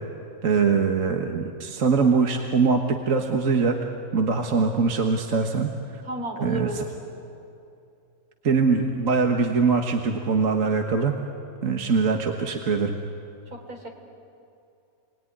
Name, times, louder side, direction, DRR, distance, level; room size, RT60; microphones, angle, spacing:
voice 1, 0.4-2.8 3.1-3.7 4.1-6.0 6.4-6.7 8.4-11.1 11.6-13.0, right 5 dB, 60° right, 3 dB, 1.7 m, -22 dB
voice 2, 6.0-6.9 13.5-13.9, right 3 dB, 80° right, 2 dB, 4.2 m, -32 dB
29.0 x 20.0 x 9.9 m, 2.6 s
omnidirectional pair, 1.6 m